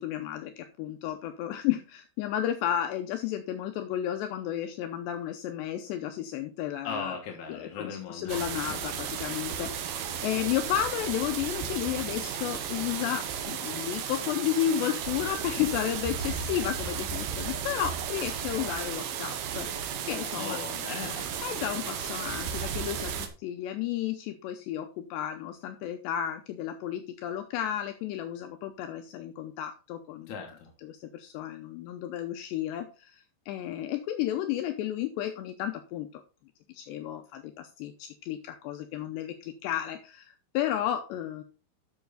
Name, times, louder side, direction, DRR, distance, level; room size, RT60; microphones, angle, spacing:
voice 1, 0.0-7.1 7.5-19.7 20.0-20.6 21.4-30.6 30.8-36.2 36.7-41.4, left 11 dB, 80° left, 6 dB, 2.7 m, -33 dB
voice 2, 6.8-8.8 9.5-9.6 20.4-21.4 30.3-30.7, left 5 dB, 65° left, 2 dB, 1.9 m, -38 dB
sound 1, 8.3-23.3, right 8 dB, 75° right, 2.1 m, -34 dB
11.5 x 6.5 x 4.0 m, 0.33 s
omnidirectional pair, 5.5 m